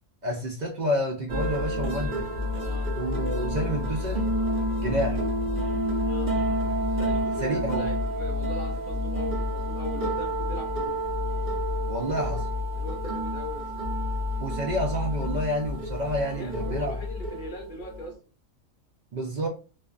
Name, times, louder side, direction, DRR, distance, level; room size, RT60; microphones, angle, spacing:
voice 1, 0.2-2.3 3.0-4.3 4.8-5.2 7.4-7.9 11.9-12.5 14.4-17.0 19.1-19.5, equal, 65° right, 0 dB, 0.4 m, -29 dB
sound 1, 1.3-18.1, left 1 dB, 45° right, 0.9 m, -29 dB
voice 2, 2.6-2.9 6.0-6.3 7.0-11.0 12.8-13.7 16.3-18.2, left 2 dB, 50° left, 1 dB, 0.7 m, -39 dB
2.5 x 2.3 x 2.3 m, 0.34 s
omnidirectional pair, 1.4 m